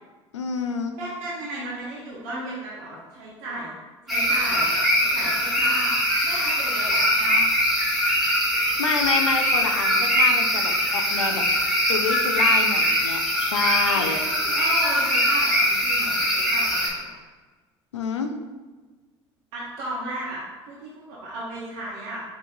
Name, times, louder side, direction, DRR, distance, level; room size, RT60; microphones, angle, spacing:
voice 1, 0.3-1.0 8.8-11.4 11.8-14.2 17.9-18.3, left 5 dB, 85° left, 6 dB, 0.4 m, -28 dB
voice 2, 1.0-3.8 4.1-7.5 13.9-17.2 19.5-22.2, right 1 dB, 60° right, -7 dB, 0.9 m, -34 dB
sound 1, 4.1-16.9, equal, ahead, 1.4 m, -22 dB
5.4 x 2.8 x 2.5 m, 1.3 s
figure-of-eight pair, 65°, 15 cm